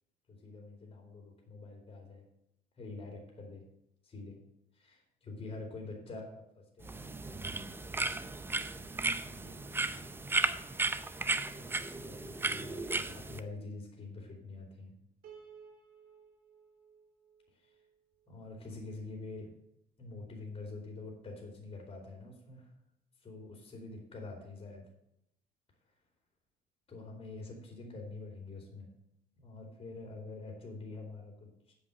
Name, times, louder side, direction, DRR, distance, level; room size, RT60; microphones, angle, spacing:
voice 1, 0.3-2.2 2.8-3.6 4.0-4.4 4.7-8.1 8.9-9.0 9.3-10.2 11.4-14.9 17.5-17.8 18.3-19.5 20.0-22.7 23.2-24.8 26.9-28.9 29.4-31.7, left 3 dB, 35° left, 0 dB, 2.7 m, -46 dB
sound 1, 6.8-13.4, right 3 dB, 15° right, 0.5 m, -35 dB
Piano, 15.2-18.5, right 6 dB, 65° right, 2.9 m, -57 dB
8.1 x 5.4 x 7.7 m, 0.80 s
cardioid pair, 110°, 17 cm